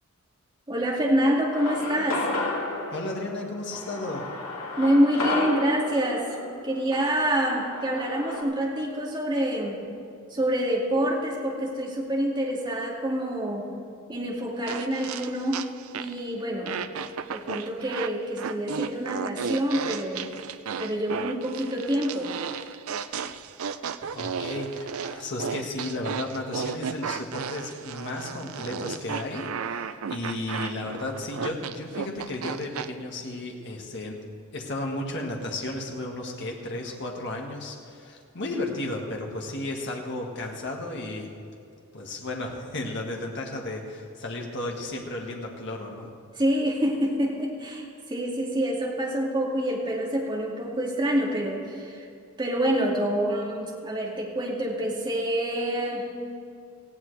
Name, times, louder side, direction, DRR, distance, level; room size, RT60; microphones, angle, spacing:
voice 1, 0.7-2.3 4.8-6.4 6.6-9.7 10.3-13.7 14.1-15.7 15.9-16.8 17.3-20.2 20.8-22.3 46.4-52.0 52.4-56.2, equal, 20° right, -3 dB, 2.3 m, -26 dB
sound 1, 1.5-8.4, left 2 dB, 85° left, 2.2 m, -32 dB
voice 2, 2.9-4.3 24.1-34.2 34.5-41.3 41.9-46.1, left 2 dB, 55° left, 0 dB, 1.7 m, -34 dB
sound 2, 14.7-16.3 16.7-32.9, right 6 dB, 75° right, 0.5 m, -34 dB
18.5 x 15.5 x 3.4 m, 2.4 s
head